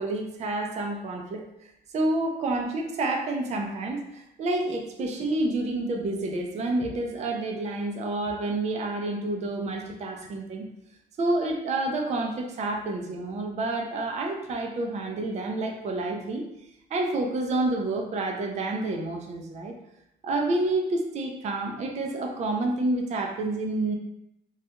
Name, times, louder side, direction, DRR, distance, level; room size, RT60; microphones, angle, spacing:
voice 1, 0.0-1.4 1.9-10.7 11.2-16.4 16.9-19.7 20.2-24.0, right 2 dB, 40° right, 2 dB, 0.4 m, -29 dB
2.3 x 2.2 x 2.8 m, 0.83 s
cardioid pair, 120°, 18 cm